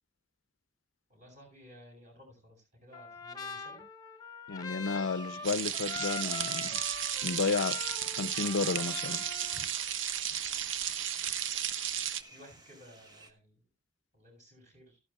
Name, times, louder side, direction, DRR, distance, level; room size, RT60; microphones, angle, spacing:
voice 1, 1.1-3.8 9.5-9.6 12.3-13.6 14.1-15.0, equal, 40° right, 7.2 m, -55 dB
Trumpet, 2.9-9.7, left 5 dB, 20° left, 0.9 m, -43 dB
voice 2, 4.5-6.8 7.2-7.8 8.1-9.2, left 4 dB, 85° left, 0.5 m, -32 dB
sound 1, 4.8-13.3, right 2 dB, 20° right, 1.1 m, -55 dB
sound 2, 5.4-12.2, right 10 dB, 75° right, 0.6 m, -34 dB
14.0 x 12.0 x 2.3 m
head